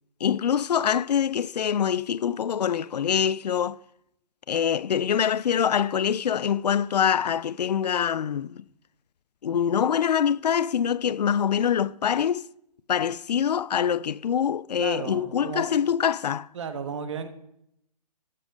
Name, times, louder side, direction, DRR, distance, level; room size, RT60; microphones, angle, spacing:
voice 1, 0.2-3.8 4.5-8.6 9.4-12.5 12.9-16.5, left 8 dB, 80° left, 0.4 m, -24 dB
voice 2, 14.8-15.7 16.5-17.3, right 6 dB, 45° right, 1.2 m, -34 dB
13.5 x 7.3 x 5.1 m
hypercardioid pair, 165°, 21 cm